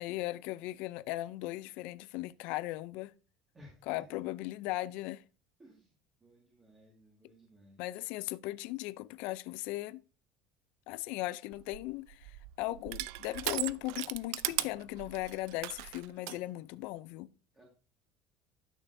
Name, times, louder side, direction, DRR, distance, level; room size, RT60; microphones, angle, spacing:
voice 1, 0.0-3.1 3.9-5.2 7.8-10.0 10.9-17.3, left 17 dB, 65° left, 0.4 m, -38 dB
voice 2, 3.5-4.2 5.6-5.9 6.2-7.8 17.5-17.6, equal, 15° right, 1.9 m, -58 dB
Crushing, 11.5-16.4, right 18 dB, 80° right, 0.3 m, -38 dB
12.0 x 6.5 x 2.6 m
cardioid pair, 155°, 2 cm